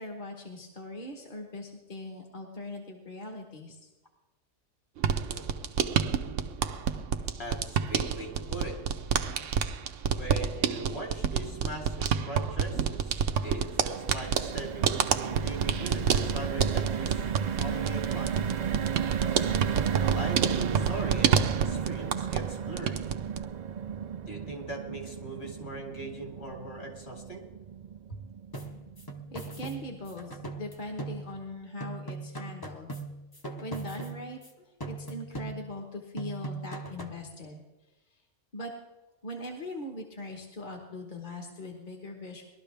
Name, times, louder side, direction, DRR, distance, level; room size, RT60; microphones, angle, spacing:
voice 1, 0.0-3.9 29.3-32.9 33.6-37.6 38.5-38.7 39.2-42.4, left 1 dB, 40° left, 1 dB, 1.5 m, -41 dB
sound 1, 5.0-22.5 22.8-23.4, right 7 dB, 75° right, 1.1 m, -29 dB
voice 2, 7.4-8.8 10.1-17.3 17.6-18.3 20.0-23.0 24.3-27.4, right 1 dB, 55° left, -1 dB, 3.3 m, -40 dB
sound 2, 13.4-29.7 30.1-30.2 30.5-30.7, right 8 dB, 55° right, 0.4 m, -34 dB
sound 3, 28.5-31.5 31.8-34.5 34.8-35.9 36.2-37.3, right 2 dB, 20° left, 0.9 m, -40 dB
20.5 x 12.5 x 3.4 m, 1.1 s
omnidirectional pair, 1.3 m